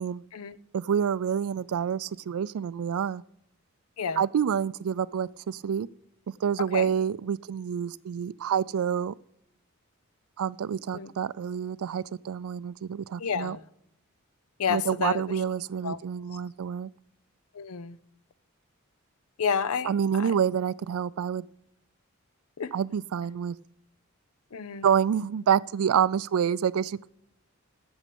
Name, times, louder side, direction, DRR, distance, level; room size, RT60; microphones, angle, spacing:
voice 1, 0.7-3.2 4.2-5.9 6.4-9.1 10.4-13.6 14.7-16.9 19.8-21.5 22.7-23.6 24.8-27.1, right 8 dB, 80° right, 0.3 m, -27 dB
voice 2, 6.6-6.9 10.9-11.1 13.2-13.6 14.6-15.2 15.8-16.0 17.5-18.0 19.4-20.3 22.6-22.7 24.5-24.9, left 6 dB, 85° left, 0.6 m, -30 dB
8.2 x 7.2 x 8.5 m
head